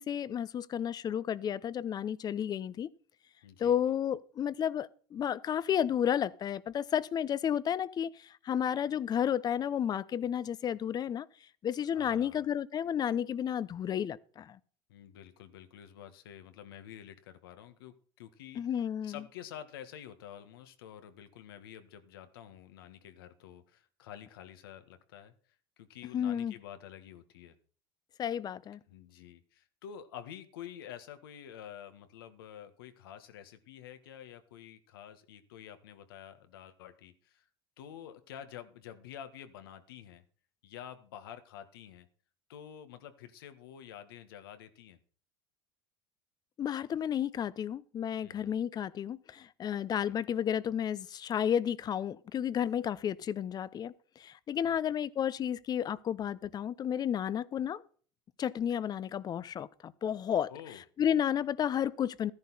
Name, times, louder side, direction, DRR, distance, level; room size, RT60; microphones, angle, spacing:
voice 1, 0.0-2.9 3.6-11.3 11.6-14.6 18.6-19.2 26.1-26.5 28.2-28.8 46.6-57.8 58.4-60.5 61.0-62.3, left 9 dB, 35° left, 0.7 m, -32 dB
voice 2, 3.4-3.7 11.9-12.5 14.9-18.6 19.0-25.3 25.8-27.5 28.9-37.5 37.8-40.2 40.6-42.1 42.5-45.0 48.2-48.5 50.1-50.2 54.6-54.8 60.5-60.8, left 10 dB, 80° left, 1.5 m, -49 dB
13.5 x 10.5 x 4.1 m
hypercardioid pair, 95°, 12 cm